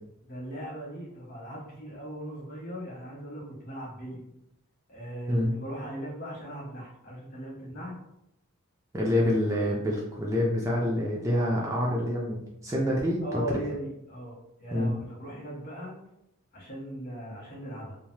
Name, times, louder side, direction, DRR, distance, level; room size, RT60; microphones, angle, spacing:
voice 1, 0.2-4.2 4.9-7.9 13.2-15.9 16.5-18.0, right 1 dB, 45° left, -5 dB, 1.1 m, -39 dB
voice 2, 8.9-13.4 14.7-14.9, left 1 dB, 15° right, -4 dB, 0.3 m, -27 dB
3.1 x 2.1 x 2.7 m, 0.86 s
head